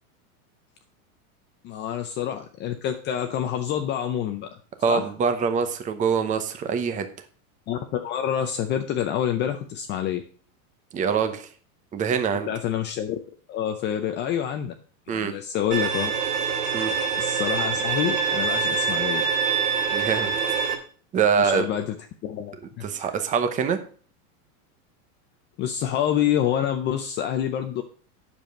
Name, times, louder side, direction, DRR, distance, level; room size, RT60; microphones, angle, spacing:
voice 1, 1.6-4.5 4.9-5.0 7.7-10.2 12.5-14.7 15.1-16.1 17.1-19.2 21.3-21.9 22.2-23.1 25.6-27.8, left 10 dB, 25° left, 6 dB, 0.6 m, -27 dB
voice 2, 4.8-7.1 10.9-11.5 11.9-12.5 15.1-15.3 16.7-16.9 19.9-20.3 21.1-21.7 22.8-23.8, right 6 dB, 15° right, 8 dB, 0.8 m, -24 dB
Bowed string instrument, 15.7-20.7, right 6 dB, 90° right, 2.8 m, -25 dB
9.0 x 7.1 x 5.2 m, 0.42 s
supercardioid pair, 150°, 45 cm